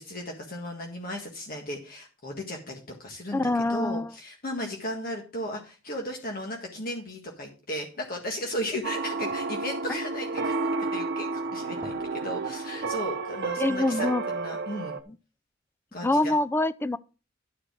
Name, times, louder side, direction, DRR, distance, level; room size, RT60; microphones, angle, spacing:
voice 1, 0.0-10.6 10.9-15.0 15.9-16.3, left 1 dB, 50° left, 1.7 m, -36 dB
voice 2, 3.3-4.1 13.6-14.2 15.1-15.2 16.0-17.0, left 2 dB, 10° left, 0.4 m, -25 dB
sound 1, 8.8-15.0, right 3 dB, 55° right, 1.0 m, -31 dB
sound 2, 9.0-11.2 11.5-12.3 12.7-12.8 13.3-13.4, right 1 dB, 15° right, 1.9 m, -52 dB
11.0 x 5.0 x 6.1 m
head